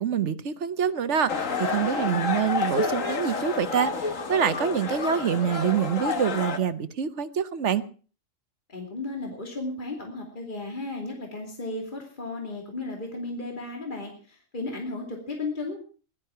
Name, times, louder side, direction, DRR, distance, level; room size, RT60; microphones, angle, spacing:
voice 1, 0.0-7.8, right 8 dB, 65° right, 1.3 m, -26 dB
sound 1, 1.3-6.6, left 4 dB, 80° left, 1.8 m, -29 dB
voice 2, 8.7-15.8, left 2 dB, 40° left, 2.9 m, -34 dB
17.0 x 12.0 x 5.7 m
omnidirectional pair, 1.3 m